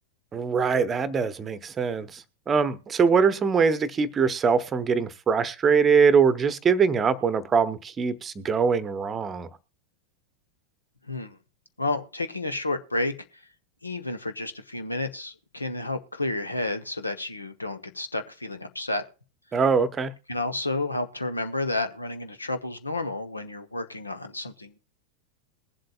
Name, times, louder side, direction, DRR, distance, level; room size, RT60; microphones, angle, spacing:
voice 1, 0.3-9.5 19.5-20.1, right 5 dB, 20° right, 14 dB, 0.8 m, -23 dB
voice 2, 11.1-11.4 11.8-13.1 13.8-19.0 20.3-24.8, left 2 dB, 80° left, 8 dB, 1.0 m, -31 dB
21.5 x 7.6 x 2.4 m, 0.36 s
figure-of-eight pair, 90°, 0 cm